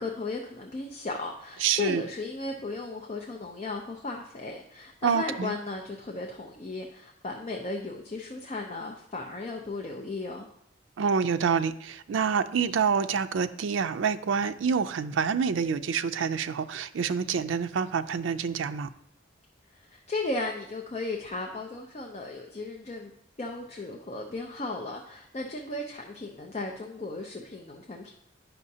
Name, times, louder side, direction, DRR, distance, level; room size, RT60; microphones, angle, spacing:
voice 1, 0.0-10.5 19.7-23.1 23.4-28.1, left 2 dB, 35° left, 1 dB, 0.5 m, -35 dB
voice 2, 1.6-2.0 5.0-5.5 11.0-18.9, right 6 dB, 80° right, 10 dB, 0.4 m, -27 dB
9.5 x 5.6 x 2.7 m, 0.75 s
head